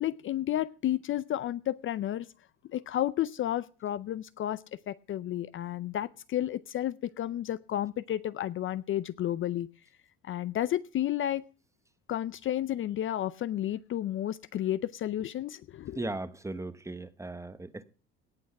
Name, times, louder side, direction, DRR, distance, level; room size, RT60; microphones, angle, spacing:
voice 1, 0.0-2.3 2.7-9.7 10.2-11.4 12.1-16.1, left 12 dB, 40° left, 0.5 m, -32 dB
voice 2, 16.0-17.8, right 2 dB, 10° right, 0.9 m, -37 dB
17.5 x 6.4 x 5.9 m
supercardioid pair, 105°, 30 cm